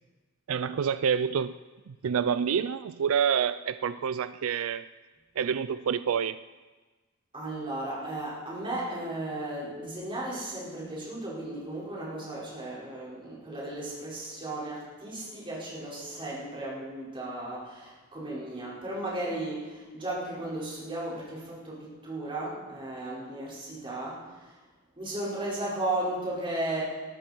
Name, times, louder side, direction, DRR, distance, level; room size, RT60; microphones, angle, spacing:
voice 1, 0.5-1.6 1.9-4.8 5.4-6.4, right 7 dB, 90° right, 14 dB, 0.4 m, -28 dB
voice 2, 7.3-24.5 25.0-26.8, right 1 dB, 25° right, -7 dB, 5.3 m, -35 dB
20.0 x 13.0 x 4.5 m, 1.3 s
head